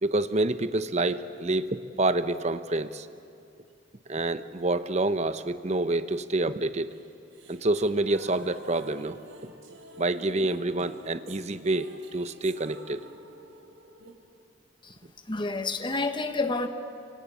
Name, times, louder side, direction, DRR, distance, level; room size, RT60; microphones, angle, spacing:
voice 1, 0.0-3.1 4.1-6.9 7.5-9.2 10.0-13.0, right 2 dB, 35° right, 11 dB, 0.9 m, -27 dB
sound 1, 6.9-14.1, right 2 dB, 80° right, 3.6 m, -48 dB
voice 2, 15.3-16.7, left 3 dB, 25° left, 8 dB, 1.3 m, -29 dB
27.0 x 25.0 x 8.5 m, 2.6 s
head